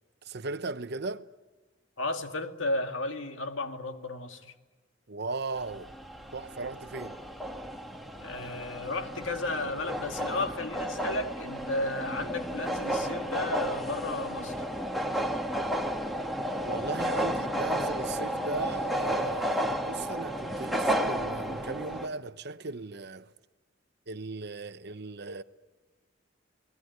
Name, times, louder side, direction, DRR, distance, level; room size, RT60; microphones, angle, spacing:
voice 1, 0.2-1.2 5.1-5.9 6.3-7.2 16.6-23.3 24.1-25.4, right 3 dB, 60° right, 1.0 m, -37 dB
voice 2, 2.0-4.5 8.2-14.7, left 2 dB, 90° left, 2.0 m, -33 dB
sound 1, 5.5-22.1, equal, ahead, 1.7 m, -32 dB
30.0 x 19.0 x 9.5 m
head